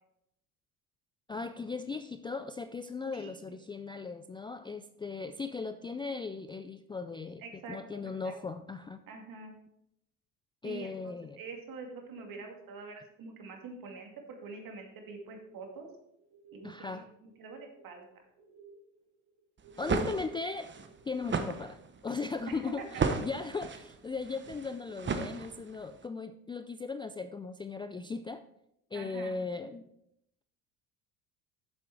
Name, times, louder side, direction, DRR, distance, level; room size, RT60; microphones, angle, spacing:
voice 1, 1.3-9.0 10.6-11.4 16.6-17.1 19.8-20.7 21.1-28.4 28.9-29.9, left 4 dB, 10° left, 9 dB, 0.3 m, -38 dB
voice 2, 7.4-8.3 9.1-9.5 10.6-15.9 16.5-18.1 22.5-22.9 28.9-29.3, right 4 dB, 55° right, 3 dB, 2.4 m, -45 dB
sound 1, 14.9-18.1 18.4-21.3, right 5 dB, 80° right, 2.7 m, -55 dB
sound 2, 19.6-25.9, right 5 dB, 25° right, 1.0 m, -35 dB
7.5 x 7.5 x 4.7 m, 0.79 s
hypercardioid pair, 75°, 42 cm